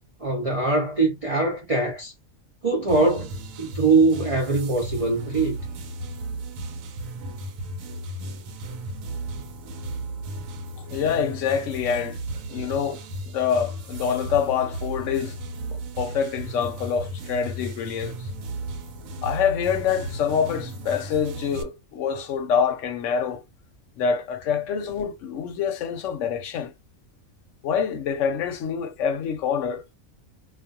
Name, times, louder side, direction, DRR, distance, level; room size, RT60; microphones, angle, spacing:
voice 1, 0.2-2.1 2.6-3.3 3.6-5.6, right 3 dB, 50° right, 0.4 m, -22 dB
sound 1, 2.9-21.6, right 1 dB, 80° right, 1.0 m, -35 dB
voice 2, 10.9-12.2 12.5-15.4 16.0-18.1 19.2-23.4 24.0-26.7 27.6-29.8, left 7 dB, 70° left, 0.9 m, -26 dB
2.3 x 2.3 x 2.6 m
omnidirectional pair, 1.4 m